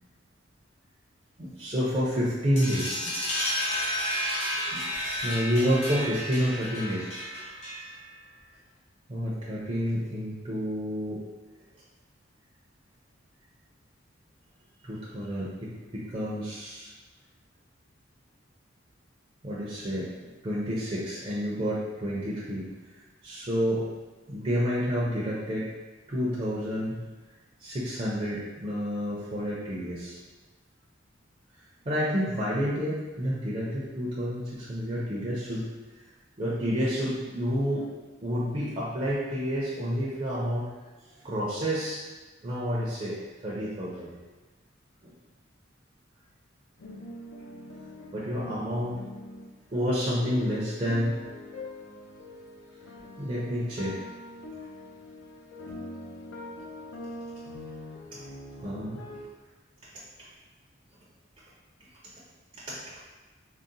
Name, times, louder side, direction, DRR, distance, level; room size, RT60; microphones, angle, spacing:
voice 1, 1.4-3.1 4.6-4.9 5.2-7.1 9.1-11.2 14.8-16.9 19.4-22.7 23.2-23.8 24.3-25.7 26.1-27.0 27.6-30.2 31.8-35.7 36.4-37.9 38.2-40.7 41.1-42.0 42.4-43.2 43.4-44.1 45.0-45.1 48.1-49.0 49.7-51.2 53.2-54.0 58.6-59.0 62.5-62.8, equal, 30° right, -7 dB, 0.5 m, -29 dB
sound 1, 2.6-8.1, equal, 35° left, 0.8 m, -32 dB
sound 2, 46.8-49.5 50.2-59.2, left 1 dB, 80° left, 0.5 m, -43 dB
3.7 x 2.0 x 2.6 m, 1.2 s
head